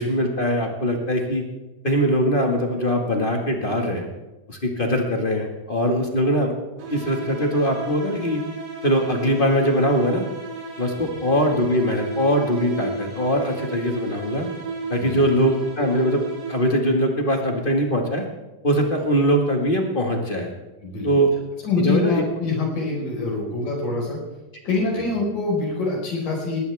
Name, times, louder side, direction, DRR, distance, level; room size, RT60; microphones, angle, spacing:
voice 1, 0.0-1.4 1.8-4.1 4.5-6.5 6.9-8.4 8.8-10.2 10.8-14.5 14.9-16.2 16.5-18.2 18.6-20.5 21.0-21.3 21.8-22.2, equal, 20° left, 2 dB, 1.3 m, -22 dB
sound 1, 6.8-17.0, right 4 dB, 80° right, 4.7 m, -34 dB
voice 2, 21.6-24.2 24.6-26.6, left 3 dB, 70° left, -1 dB, 6.5 m, -25 dB
20.5 x 16.5 x 3.6 m, 1.1 s
omnidirectional pair, 3.9 m